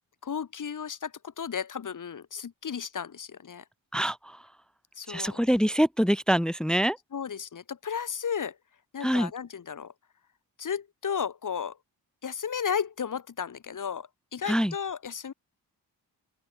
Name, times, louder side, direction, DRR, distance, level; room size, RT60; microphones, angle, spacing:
voice 1, 0.2-1.1 1.4-3.6 5.0-5.4 7.1-8.6 8.9-9.9 10.6-11.8 12.2-15.3, left 7 dB, 55° left, 3.9 m, -34 dB
voice 2, 3.9-4.4 5.1-7.0 9.0-9.3 14.4-14.7, equal, ahead, 0.9 m, -25 dB
open air
wide cardioid pair, 150°, 37 cm